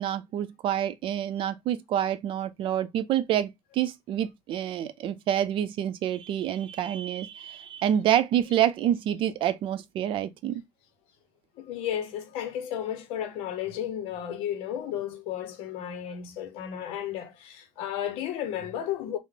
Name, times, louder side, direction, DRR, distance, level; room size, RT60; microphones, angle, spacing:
voice 1, 0.0-10.6, right 11 dB, 60° right, 0.4 m, -27 dB
voice 2, 11.6-19.2, left 10 dB, 70° left, 0.7 m, -33 dB
3.2 x 2.0 x 3.4 m
hypercardioid pair, 60°, 10 cm